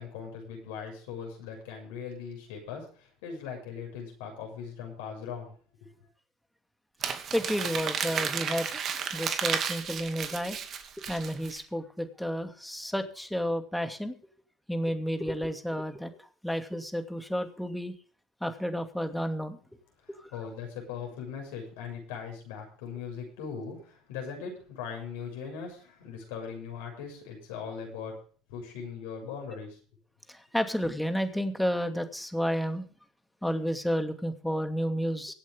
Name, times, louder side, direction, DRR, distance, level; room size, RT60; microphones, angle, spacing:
voice 1, 0.0-5.5 5.8-6.1 20.3-28.1 28.5-29.8, left 6 dB, 80° left, 1 dB, 6.8 m, -40 dB
Crumpling crinkling, 7.0-11.6, right 7 dB, 50° right, 2.5 m, -33 dB
voice 2, 7.3-8.8 9.1-10.6 11.1-14.1 14.7-16.1 16.4-17.9 18.4-19.6 20.2-20.3 30.3-32.8 33.4-35.3, equal, 5° left, 7 dB, 2.6 m, -31 dB
24.0 x 8.3 x 3.7 m, 0.41 s
hypercardioid pair, 80°, 0 cm